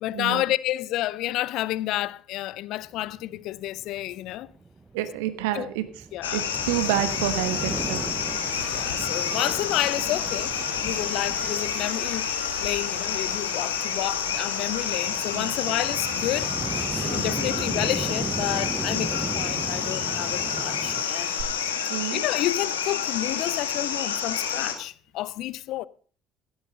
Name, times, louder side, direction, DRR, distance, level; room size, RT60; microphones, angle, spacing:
voice 1, 0.0-4.5 5.5-5.7 6.1-6.4 8.7-12.3 12.6-16.5 17.0-21.3 21.8-25.9, left 15 dB, 65° left, 0.4 m, -30 dB
sound 1, 2.9-21.0, right 3 dB, 25° right, 0.8 m, -36 dB
voice 2, 4.9-5.8 6.3-8.0 15.3-15.5 21.9-22.3, right 13 dB, 75° right, 1.2 m, -28 dB
sound 2, 6.2-24.7, left 8 dB, 85° left, 1.5 m, -29 dB
Buzz, 6.6-21.4, right 4 dB, 50° right, 5.4 m, -43 dB
16.0 x 8.0 x 5.1 m
hypercardioid pair, 55°, 0 cm